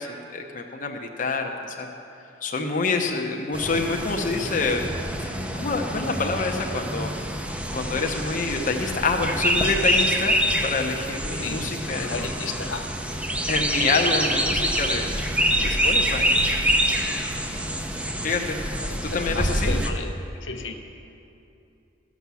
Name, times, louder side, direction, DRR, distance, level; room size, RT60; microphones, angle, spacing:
voice 1, 0.0-1.9 2.4-4.9 5.2-7.1 7.7-12.3 13.5-15.1 15.4-16.4 16.9-17.1 18.2-18.6 19.1-19.8, left 4 dB, 45° left, 2 dB, 0.8 m, -27 dB
sound 1, 3.5-19.9, right 1 dB, 5° right, 0.6 m, -26 dB
voice 2, 11.4-12.9 13.2-13.3 18.8-20.1 20.4-20.7, left 4 dB, 80° left, 5 dB, 0.9 m, -34 dB
14.0 x 6.1 x 6.9 m, 2.7 s
head